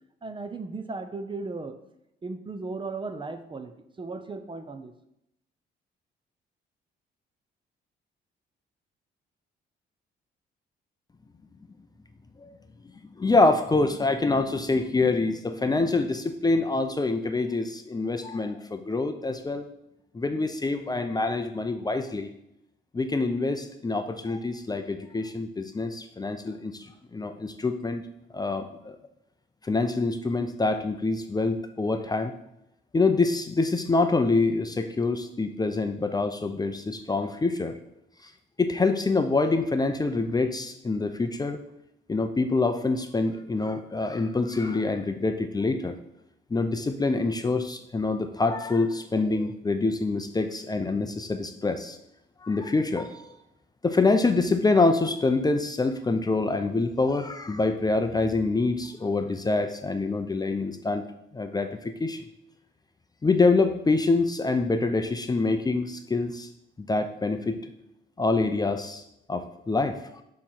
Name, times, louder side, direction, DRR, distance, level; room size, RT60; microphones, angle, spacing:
voice 1, 0.2-1.8 2.2-4.9, right 3 dB, 25° right, 8 dB, 0.6 m, -36 dB
voice 2, 13.2-19.7 20.1-22.3 22.9-26.9 27.1-28.0 28.3-29.0 29.6-32.3 32.9-37.8 38.6-41.6 42.1-46.0 46.5-52.0 52.4-53.3 53.8-61.0 61.3-62.2 63.2-66.5 66.8-67.6 68.2-69.0 69.3-70.2, left 3 dB, 20° left, 7 dB, 0.5 m, -26 dB
6.7 x 3.1 x 5.7 m, 0.82 s
cardioid pair, 90°, 20 cm